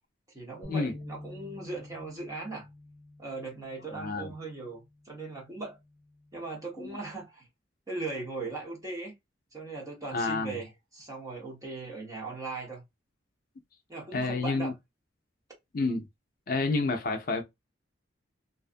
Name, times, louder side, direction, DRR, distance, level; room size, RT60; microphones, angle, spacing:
voice 1, 0.3-2.7 3.2-5.8 6.3-7.5 7.9-9.1 9.5-12.8 13.9-14.7, right 3 dB, 15° right, 0.9 m, -39 dB
sound 1, 0.6-6.9, left 2 dB, 30° left, 0.9 m, -49 dB
voice 2, 3.9-4.3 6.8-6.9 10.1-10.6 14.1-14.7 15.7-16.1 16.5-17.4, left 3 dB, 45° left, 0.4 m, -29 dB
2.5 x 2.3 x 2.4 m
head